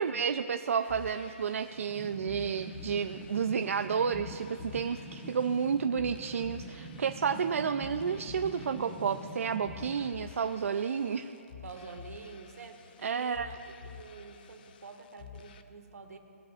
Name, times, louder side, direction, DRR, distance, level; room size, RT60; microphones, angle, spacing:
voice 1, 0.0-11.3 13.0-13.5, right 6 dB, 65° right, 8 dB, 0.5 m, -31 dB
sound 1, 0.8-15.6, left 7 dB, 35° left, 0.7 m, -50 dB
sound 2, 1.7-10.1, right 1 dB, 10° right, 0.8 m, -45 dB
voice 2, 11.6-16.2, right 4 dB, 85° right, 5 dB, 1.8 m, -48 dB
20.5 x 9.8 x 2.5 m, 2.9 s
hypercardioid pair, 165°, 8 cm